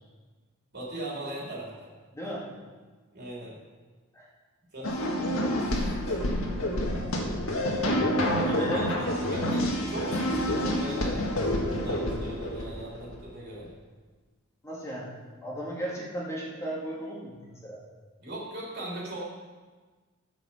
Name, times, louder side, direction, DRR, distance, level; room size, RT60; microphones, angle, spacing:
voice 1, 0.7-1.9 3.1-3.6 4.7-5.0 5.6-7.0 8.2-13.7 18.2-19.2, right 1 dB, 50° right, -4 dB, 3.5 m, -39 dB
voice 2, 2.1-2.4 4.1-4.3 8.5-8.8 14.6-15.2 15.4-17.8, right 1 dB, 15° left, -5 dB, 2.1 m, -36 dB
sound 1, 4.8-13.1, equal, 75° left, 1.9 m, -28 dB
9.4 x 7.2 x 7.2 m, 1.4 s
head